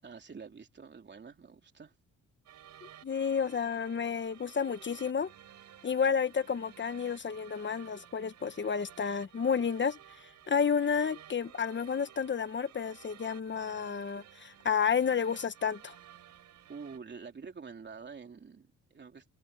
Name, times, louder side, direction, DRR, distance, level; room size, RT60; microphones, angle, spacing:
voice 1, 0.0-1.9 16.7-19.2, right 5 dB, 35° right, 3.4 m, -47 dB
sound 1, 2.5-17.0, right 11 dB, 70° right, 4.9 m, -54 dB
voice 2, 3.0-5.3 5.8-15.9, left 6 dB, 40° left, 1.4 m, -31 dB
cardioid pair, 90°, 30 cm